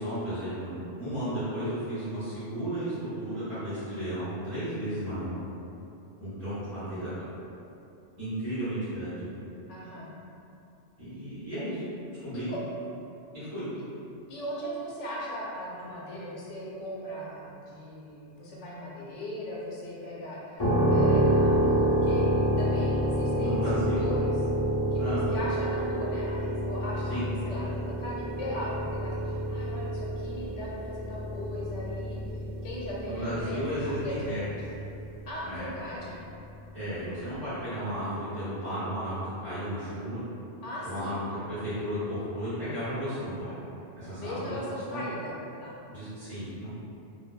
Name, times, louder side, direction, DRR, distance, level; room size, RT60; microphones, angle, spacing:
voice 1, 0.0-5.4 6.2-7.2 8.2-9.3 11.0-11.8 12.2-12.5 13.3-13.6 23.3-24.1 24.9-25.2 27.1-27.2 33.0-34.4 35.4-35.7 36.7-40.2 40.8-43.5 43.9-44.6 44.9-45.0 45.9-46.7, equal, 30° right, -20 dB, 1.3 m, -34 dB
voice 2, 9.7-10.1 12.3-12.6 14.3-24.3 24.9-34.5 35.3-36.2 40.6-41.1 44.1-45.8, left 1 dB, 75° left, -6 dB, 1.0 m, -38 dB
sound 1, 20.6-35.3, equal, 35° left, 0.5 m, -28 dB
3.2 x 2.1 x 2.2 m, 2.7 s
omnidirectional pair, 1.3 m